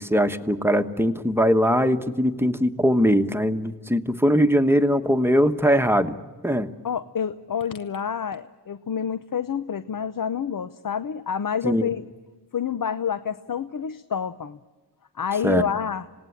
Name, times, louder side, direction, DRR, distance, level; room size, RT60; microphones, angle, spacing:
voice 1, 0.0-6.1 6.4-6.7 11.6-11.9 15.4-15.6, equal, 5° right, 8 dB, 1.2 m, -21 dB
voice 2, 6.8-12.1 12.5-14.6 15.1-16.1, left 7 dB, 55° left, 12 dB, 0.7 m, -28 dB
26.5 x 18.5 x 8.5 m, 1.4 s
cardioid pair, 60°, 40 cm